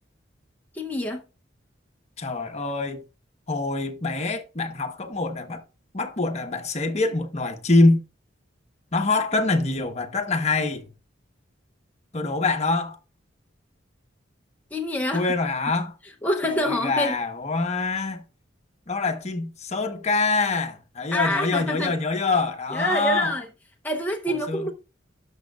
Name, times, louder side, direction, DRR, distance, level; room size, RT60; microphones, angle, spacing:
voice 1, 0.7-1.2 14.7-15.3 16.2-17.2 21.1-21.9 22.7-23.5 23.8-24.7, left 1 dB, 10° left, 0.7 m, -26 dB
voice 2, 2.2-3.0 3.5-5.6 5.9-8.0 8.9-10.9 12.1-13.0 15.1-15.9 16.4-18.2 18.9-23.3 24.3-24.7, left 3 dB, 35° left, 1.0 m, -25 dB
12.0 x 6.3 x 2.4 m
head